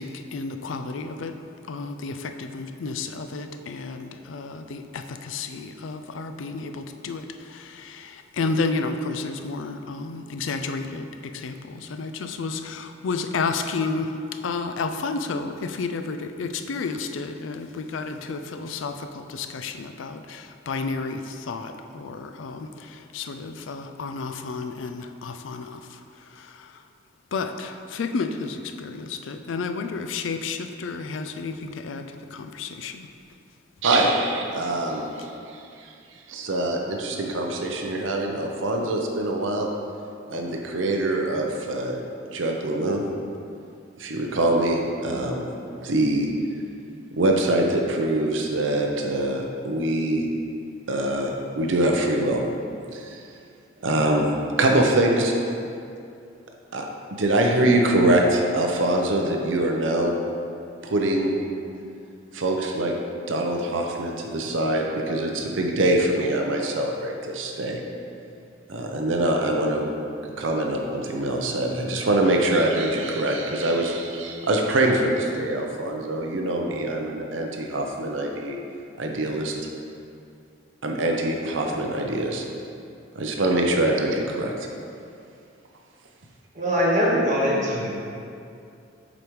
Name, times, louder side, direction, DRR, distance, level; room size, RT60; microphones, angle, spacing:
voice 1, 0.0-1.4 1.7-14.1 14.4-26.8 27.3-33.1, left 4 dB, 80° left, 7 dB, 0.4 m, -31 dB
voice 2, 33.8-35.9 36.3-39.7 40.3-42.0 42.3-43.0 44.0-45.4 45.8-46.3 47.1-50.3 50.9-52.4 52.9-53.2 53.8-54.3 54.6-55.3 56.7-56.9 57.2-60.1 60.8-61.3 62.3-62.9 63.3-67.8 68.7-69.9 70.4-78.6 79.0-79.6 80.8-82.4 83.2-84.5, right 1 dB, 80° right, 1 dB, 0.7 m, -24 dB
voice 3, 86.5-87.9, equal, 40° right, -5 dB, 1.4 m, -22 dB
7.7 x 5.1 x 3.1 m, 2.5 s
head